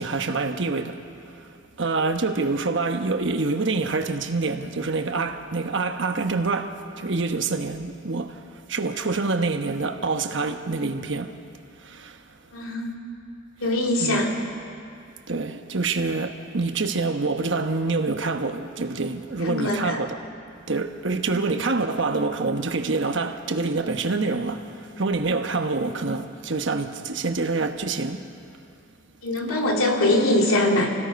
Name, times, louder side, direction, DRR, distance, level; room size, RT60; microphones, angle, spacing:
voice 1, 0.0-11.4 11.8-12.4 14.0-14.2 15.3-20.3 20.7-28.3, right 3 dB, 60° right, 1.2 m, -26 dB
voice 2, 12.5-13.0 13.6-14.3 19.4-20.0 21.3-21.4 29.2-30.9, left 1 dB, 90° left, 2.8 m, -22 dB
28.5 x 17.5 x 5.3 m
head